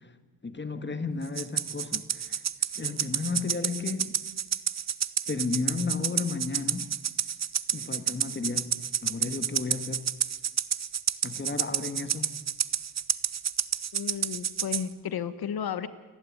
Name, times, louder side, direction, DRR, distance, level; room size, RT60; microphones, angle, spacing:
voice 1, 0.4-2.4 2.8-4.2 5.3-6.9 7.7-10.0 11.2-12.3, left 4 dB, 30° left, 9 dB, 1.8 m, -33 dB
Rattle (instrument), 1.4-14.9, right 8 dB, 45° right, 0.7 m, -30 dB
voice 2, 13.9-15.9, left 8 dB, 85° left, 13 dB, 1.3 m, -33 dB
28.5 x 11.5 x 9.6 m, 1.2 s
cardioid pair, 80°, 36 cm